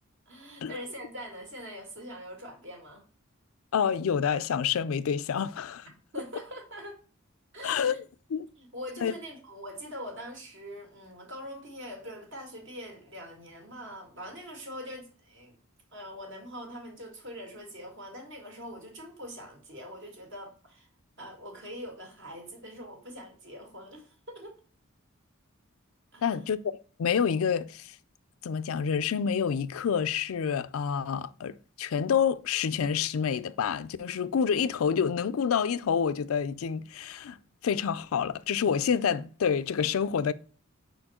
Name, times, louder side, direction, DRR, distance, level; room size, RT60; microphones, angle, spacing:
voice 1, 0.3-3.0 6.1-7.0 7.5-8.0 8.6-15.6 15.9-20.9 21.2-24.5 26.1-26.4, equal, 60° right, 2.0 m, -43 dB
voice 2, 3.7-5.9 7.6-8.0 8.3-8.5 9.0-9.1 26.2-28.0 28.4-37.4 37.6-40.3, left 7 dB, 85° left, 0.4 m, -28 dB
5.1 x 4.5 x 4.2 m
head